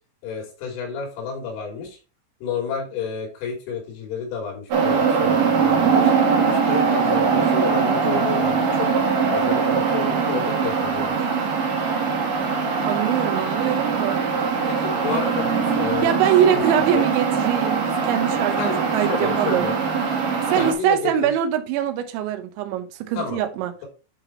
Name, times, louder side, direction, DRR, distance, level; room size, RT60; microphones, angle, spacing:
voice 1, 0.2-2.0 2.4-6.1 6.4-8.9 9.3-11.2 14.7-16.6 16.9-17.1 18.6-19.8 20.6-21.3 23.2-23.4, left 6 dB, 85° left, 5.9 m, -30 dB
sound 1, 4.7-20.7, right 5 dB, 60° right, 2.4 m, -21 dB
voice 2, 12.9-14.3 16.0-19.7 20.5-23.7, right 10 dB, 75° right, 2.9 m, -23 dB
11.0 x 4.3 x 3.2 m
omnidirectional pair, 6.0 m